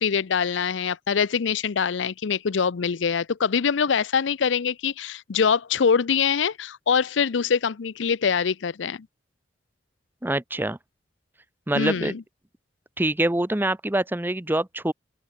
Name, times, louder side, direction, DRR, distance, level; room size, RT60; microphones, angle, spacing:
voice 1, 0.0-9.1 11.7-12.2, left 6 dB, 85° left, 0.5 m, -24 dB
voice 2, 10.2-10.8 11.7-12.1 13.0-14.9, right 1 dB, 10° right, 0.8 m, -25 dB
open air
head